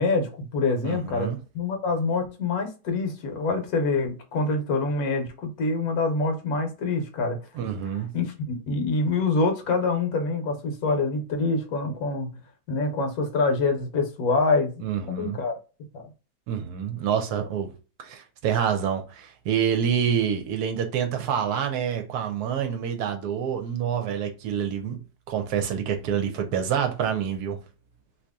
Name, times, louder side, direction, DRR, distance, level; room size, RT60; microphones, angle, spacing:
voice 1, 0.0-7.4 8.1-12.4 12.7-14.7 15.1-15.6 15.9-16.0, left 3 dB, 65° left, 1.1 m, -25 dB
voice 2, 0.8-1.4 7.5-8.1 14.8-15.4 16.5-17.7 18.0-25.0 25.3-27.6, right 8 dB, 75° right, 1.1 m, -27 dB
2.8 x 2.8 x 3.4 m
omnidirectional pair, 1.8 m